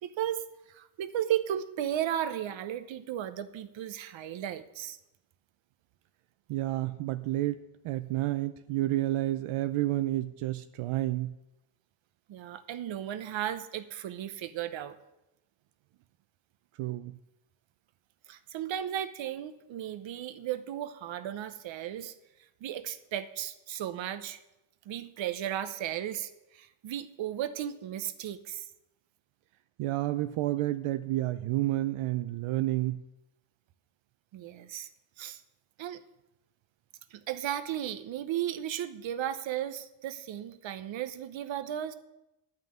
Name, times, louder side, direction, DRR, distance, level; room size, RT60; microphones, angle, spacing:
voice 1, 0.0-5.0 12.3-15.0 18.3-22.1 22.6-24.4 24.8-28.7 34.3-34.9 35.2-35.4 35.8-36.0 37.1-41.9, right 11 dB, 65° right, 11 dB, 0.9 m, -35 dB
voice 2, 6.5-11.3 16.8-17.2 29.8-33.0, right 16 dB, 90° right, 10 dB, 0.6 m, -30 dB
11.5 x 5.9 x 8.8 m, 0.91 s
cardioid pair, 160°, 49 cm